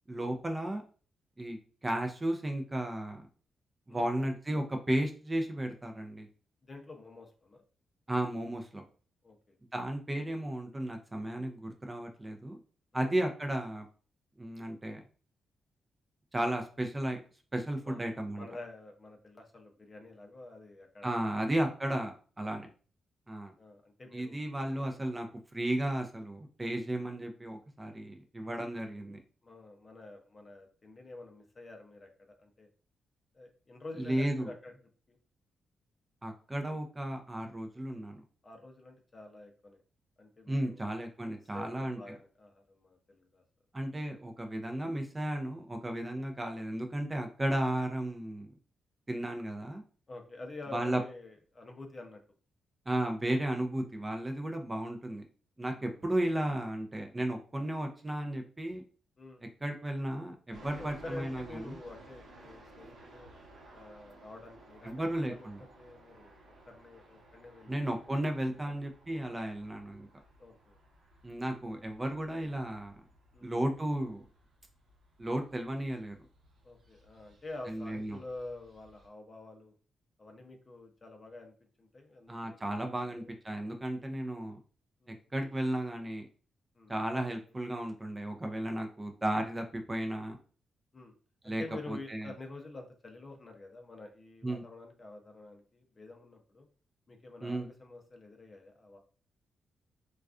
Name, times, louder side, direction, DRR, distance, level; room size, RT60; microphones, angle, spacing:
voice 1, 0.1-0.8 1.4-3.3 3.9-6.3 8.1-8.8 9.7-12.6 12.9-13.9 14.4-15.0 16.3-17.2 17.5-18.4 21.0-22.7 23.3-23.5 24.1-25.3 25.5-29.2 34.0-34.5 36.2-38.2 40.5-42.0 43.7-48.5 49.1-49.8 50.7-51.0 52.9-55.2 55.6-58.8 59.6-61.8 64.8-65.6 67.7-70.1 71.2-73.0 73.4-74.2 75.2-76.2 77.7-78.2 82.3-84.6 85.3-86.3 86.9-90.4 91.4-92.3 94.4-94.6 97.4-97.7, right 1 dB, 20° right, 4 dB, 0.4 m, -34 dB
voice 2, 6.6-7.6 9.2-9.6 12.9-13.1 17.8-18.1 18.4-21.5 22.4-22.6 23.6-24.4 29.4-32.7 33.3-34.7 35.1-35.2 38.4-39.8 40.2-40.9 41.3-43.4 46.0-46.2 50.1-52.2 55.6-56.0 59.2-59.4 60.8-63.3 63.7-65.5 65.8-66.4 66.7-67.9 68.6-68.7 70.4-70.8 73.3-73.6 76.6-79.7 80.2-83.3 85.0-85.2 86.7-86.9 90.9-91.1 91.4-96.7 97.1-99.0, left 2 dB, 35° left, 3 dB, 0.5 m, -48 dB
sound 1, 60.5-79.1, right 1 dB, 70° right, 0.9 m, -57 dB
2.3 x 2.3 x 2.4 m, 0.39 s
cardioid pair, 75°, 0 cm